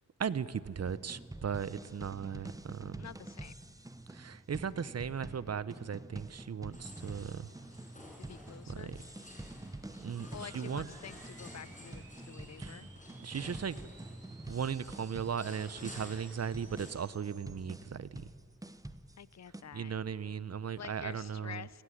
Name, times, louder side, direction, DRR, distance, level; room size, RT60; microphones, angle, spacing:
voice 1, 0.2-3.0 4.1-7.5 8.7-9.0 10.0-10.3 10.5-10.9 12.6-12.8 13.2-13.7 14.5-18.2 19.7-21.6, right 7 dB, 50° right, 17 dB, 0.7 m, -37 dB
sound 1, 0.8-19.6, right 1 dB, 10° right, 0.9 m, -47 dB
voice 2, 3.0-3.5 8.2-9.0 10.3-12.9 19.2-19.9 20.8-21.8, left 8 dB, 55° left, 19 dB, 0.6 m, -48 dB
sound 2, 6.7-16.9, left 1 dB, 25° left, 6.0 m, -52 dB
sound 3, 10.1-17.6, right 4 dB, 80° right, 4.1 m, -60 dB
29.5 x 16.0 x 10.0 m, 2.4 s
wide cardioid pair, 135°, 33 cm